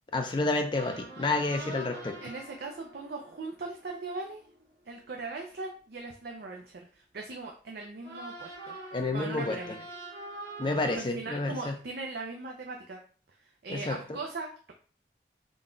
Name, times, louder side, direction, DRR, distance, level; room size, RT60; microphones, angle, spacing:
voice 1, 0.1-2.1 8.9-9.6 10.6-11.7 13.7-14.0, left 2 dB, 25° left, 5 dB, 0.4 m, -29 dB
sound 1, 0.7-5.5 8.0-11.0, right 2 dB, 80° right, 1.4 m, -45 dB
voice 2, 2.2-4.5 4.9-8.7 9.1-9.8 10.9-13.0 13.6-14.7, right 3 dB, 60° right, 1 dB, 0.5 m, -39 dB
3.8 x 2.3 x 3.8 m, 0.41 s
head